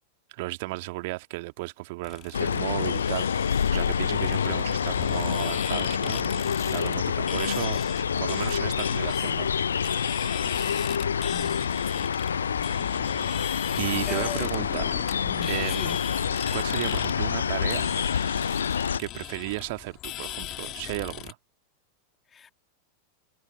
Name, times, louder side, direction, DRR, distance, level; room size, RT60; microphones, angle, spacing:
voice 1, 0.3-7.8 8.2-9.6 13.8-15.0 15.5-15.9 16.5-17.9 19.0-21.4, right 23 dB, 50° right, 1.8 m, -34 dB
sound 1, 2.0-21.3, left 16 dB, 35° left, 2.7 m, -38 dB
sound 2, 2.3-19.0, left 7 dB, 70° left, 0.4 m, -27 dB
voice 2, 11.3-11.7 11.9-12.1 14.0-14.5 15.1-16.0 22.3-22.5, left 7 dB, 20° left, 2.2 m, -39 dB
figure-of-eight pair, 90°, 0 cm